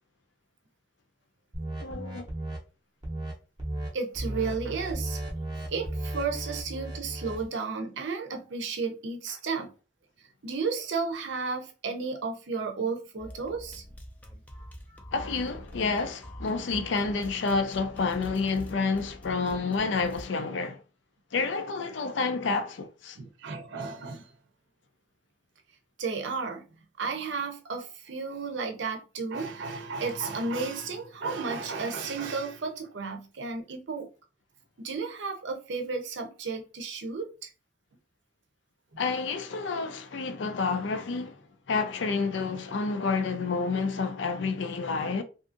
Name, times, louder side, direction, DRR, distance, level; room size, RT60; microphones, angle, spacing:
sound 1, 1.5-2.6 3.0-3.3 3.6-3.9 4.1-7.4, right 1 dB, 25° right, 0.6 m, -35 dB
voice 1, 1.8-2.3 15.1-20.8 21.3-23.2 39.0-41.4 41.7-45.2, left 4 dB, 75° left, 0.5 m, -29 dB
voice 2, 3.9-5.2 5.7-9.7 10.4-13.8 23.2-24.3 26.0-26.6 27.0-34.1 34.8-37.5, right 4 dB, 75° right, 0.6 m, -33 dB
sound 2, 13.2-20.3, equal, 10° left, 0.3 m, -45 dB
2.7 x 2.5 x 2.5 m
head